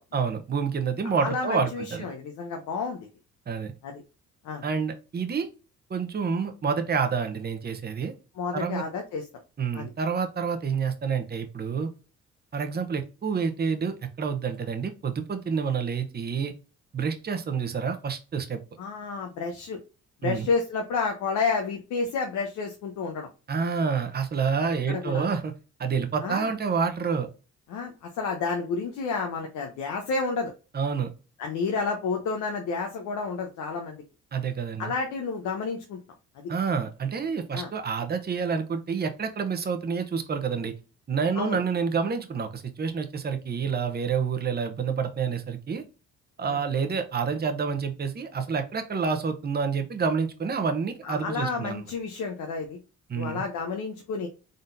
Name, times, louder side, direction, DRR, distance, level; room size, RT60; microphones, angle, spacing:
voice 1, 0.1-2.1 3.5-3.7 4.6-5.5 5.9-8.1 8.5-8.8 9.6-11.9 12.5-16.5 16.9-18.6 20.2-20.5 23.5-25.5 25.8-27.3 30.7-31.1 34.3-34.9 36.5-40.7 41.1-45.8 46.4-51.8 53.1-53.4, right 6 dB, 30° right, 7 dB, 0.8 m, -28 dB
voice 2, 1.0-3.1 3.8-4.0 4.4-4.6 8.4-9.2 9.7-9.9 18.8-19.8 20.2-23.3 24.6-25.3 26.2-26.5 27.7-30.5 31.4-34.0 34.8-36.0 37.5-37.7 41.4-41.6 46.4-46.6 51.0-52.8 53.1-54.3, left 4 dB, 85° left, 2 dB, 0.8 m, -30 dB
3.9 x 3.8 x 2.6 m, 0.32 s
cardioid pair, 90°, 30 cm